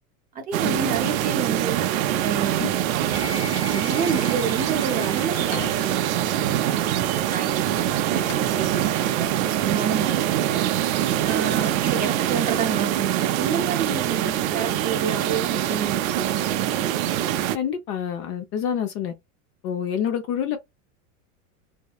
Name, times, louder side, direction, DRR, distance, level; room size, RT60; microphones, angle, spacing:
voice 1, 0.3-1.9 2.2-6.9 7.3-8.3 8.5-10.6 11.2-16.8, right 6 dB, 20° right, 0.5 m, -30 dB
sound 1, 0.5-17.6, right 12 dB, 75° right, 0.5 m, -24 dB
sound 2, 3.1-12.8, left 3 dB, 10° left, 0.9 m, -43 dB
Sliding door / Wood, 5.0-6.2 7.7-7.8 8.1-9.2 11.0-11.9, left 5 dB, 80° left, 1.2 m, -40 dB
voice 2, 17.5-19.1 19.6-20.6, left 8 dB, 35° left, 0.4 m, -27 dB
2.7 x 2.1 x 2.3 m
supercardioid pair, 130°, 42 cm